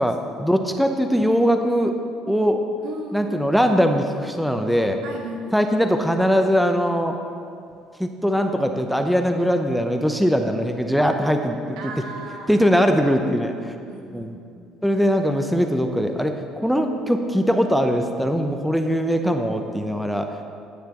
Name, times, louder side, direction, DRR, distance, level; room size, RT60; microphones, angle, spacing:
voice 1, 0.0-2.0 2.3-2.6 3.1-5.0 5.5-7.1 8.0-11.8 12.5-13.8 14.1-14.3 14.8-20.4, equal, ahead, 5 dB, 0.8 m, -21 dB
voice 2, 2.8-3.5 5.0-5.6 11.8-12.7 13.9-14.6, right 2 dB, 75° right, 1 dB, 1.4 m, -36 dB
17.5 x 6.7 x 3.1 m, 2.4 s
hypercardioid pair, 70°, 0 cm